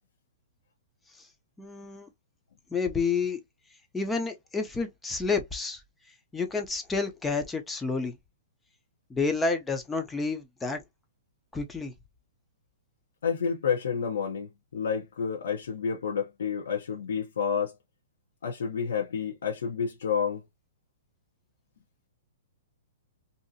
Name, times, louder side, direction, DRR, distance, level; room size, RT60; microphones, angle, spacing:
voice 1, 1.6-2.1 2.7-3.4 3.9-5.8 6.3-8.2 9.1-10.8 11.5-11.9, left 4 dB, 10° left, 0.4 m, -29 dB
voice 2, 13.2-17.7 18.4-20.4, left 6 dB, 90° left, 0.8 m, -29 dB
2.7 x 2.4 x 2.6 m
hypercardioid pair, 165°, 0 cm